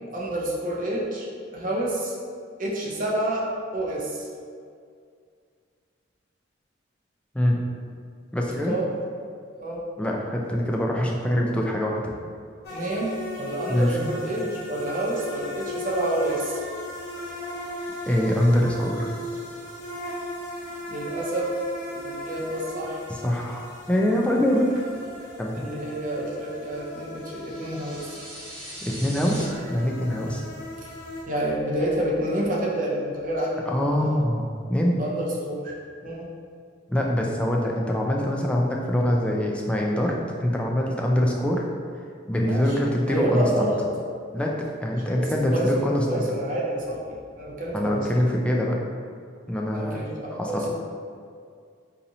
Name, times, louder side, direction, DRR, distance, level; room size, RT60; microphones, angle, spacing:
voice 1, 0.1-1.3 1.5-2.1 2.6-4.3 8.7-8.9 9.6-9.8 12.7-16.6 20.9-21.6 21.9-23.0 25.6-28.2 30.2-30.4 31.3-34.2 35.0-35.7 36.0-36.3 42.4-42.7 43.1-43.8 44.9-48.1 49.7-50.7, right 1 dB, 45° right, -4 dB, 0.6 m, -29 dB
voice 2, 8.3-8.7 10.0-12.1 13.7-14.1 18.1-19.1 23.1-24.7 25.4-25.5 28.8-30.4 33.7-35.0 36.9-40.2 40.4-41.7 42.3-43.7 44.3-44.5 44.8-46.2 47.7-48.8 49.5-50.0 50.3-50.7, equal, 5° left, -2 dB, 0.3 m, -24 dB
sound 1, 12.6-31.2, left 1 dB, 55° left, 0.9 m, -37 dB
sound 2, 27.3-29.4, equal, 75° right, 1.0 m, -40 dB
4.0 x 2.7 x 2.7 m, 2.2 s
head